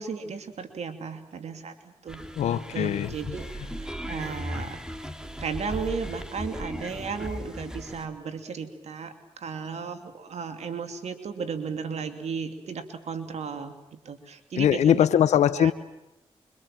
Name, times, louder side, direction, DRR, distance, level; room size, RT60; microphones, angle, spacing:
voice 1, 0.0-2.2 2.5-3.5 3.8-4.8 5.4-15.0 15.6-15.7, right 5 dB, 75° right, 2.8 m, -35 dB
sound 1, 2.1-8.1, equal, 5° right, 3.7 m, -37 dB
voice 2, 2.4-3.4 14.6-15.7, left 10 dB, 90° left, 0.9 m, -22 dB
25.5 x 24.5 x 7.5 m
supercardioid pair, 50°, 11 cm